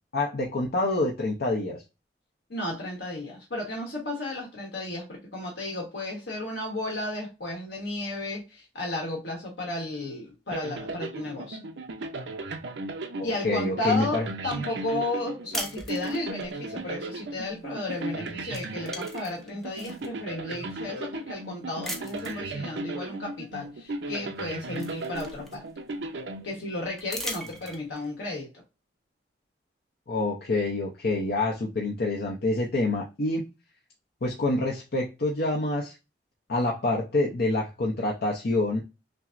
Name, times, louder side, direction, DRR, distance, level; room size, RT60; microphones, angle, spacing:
voice 1, 0.1-1.8 13.2-14.3 30.1-33.4 34.2-35.9 36.5-38.8, left 2 dB, 55° left, -2 dB, 0.6 m, -27 dB
voice 2, 2.5-11.6 13.2-25.6 26.4-28.5, left 2 dB, 75° left, -2 dB, 1.2 m, -33 dB
sound 1, 10.5-27.1, right 2 dB, 70° right, 0.5 m, -36 dB
sound 2, 15.5-16.5 17.9-18.1 18.4-20.1 20.7-20.8 21.8-22.4 23.9-24.0 24.4-25.9 27.0-28.1, equal, ahead, 0.6 m, -38 dB
5.8 x 2.0 x 2.5 m, 0.28 s
head